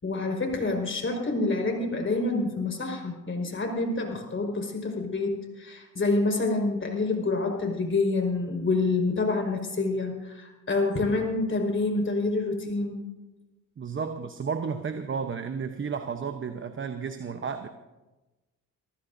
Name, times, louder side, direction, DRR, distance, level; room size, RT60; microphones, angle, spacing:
voice 1, 0.0-13.0, left 3 dB, 40° left, 2 dB, 5.1 m, -27 dB
voice 2, 13.8-17.7, right 6 dB, 40° right, 7 dB, 1.0 m, -32 dB
25.5 x 14.5 x 2.7 m, 1.1 s
cardioid pair, 70°, 33 cm